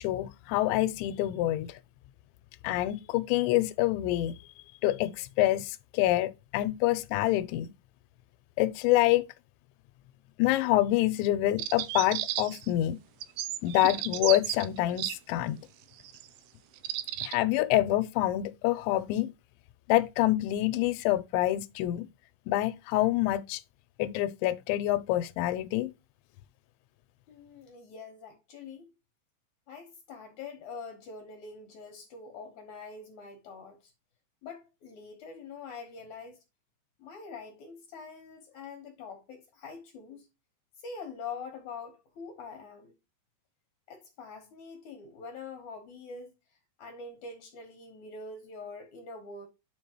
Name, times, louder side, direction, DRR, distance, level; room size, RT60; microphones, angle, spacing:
voice 1, 0.0-1.7 2.6-4.3 4.8-7.7 8.6-9.2 10.4-13.0 13.6-15.6 17.2-19.3 19.9-22.1 22.5-23.6 24.0-25.9, left 15 dB, 85° left, 2.9 m, -26 dB
sound 1, 11.6-12.7 13.2-15.2 16.0-16.2 16.8-17.4, right 14 dB, 85° right, 2.2 m, -33 dB
voice 2, 27.3-28.9 29.7-33.9 34.4-36.4 37.0-40.3 40.8-42.9 43.9-46.3 46.8-49.5, left 4 dB, 65° left, 1.9 m, -44 dB
10.0 x 4.9 x 2.9 m
omnidirectional pair, 5.2 m